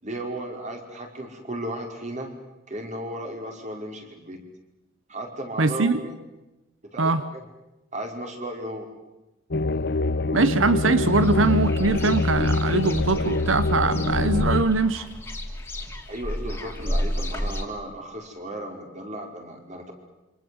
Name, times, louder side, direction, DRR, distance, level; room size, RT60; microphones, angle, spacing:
voice 1, 0.0-2.3 2.7-4.4 5.1-6.2 6.8-7.4 7.9-8.9 16.1-19.9, right 1 dB, 40° right, 3 dB, 5.2 m, -35 dB
voice 2, 5.6-6.0 7.0-7.2 10.3-15.1, right 3 dB, 85° right, 13 dB, 1.0 m, -22 dB
sound 1, 9.5-14.6, left 2 dB, 55° left, 0.9 m, -24 dB
sound 2, 11.0-17.6, equal, 10° left, 3.1 m, -32 dB
27.5 x 25.5 x 7.9 m, 0.99 s
head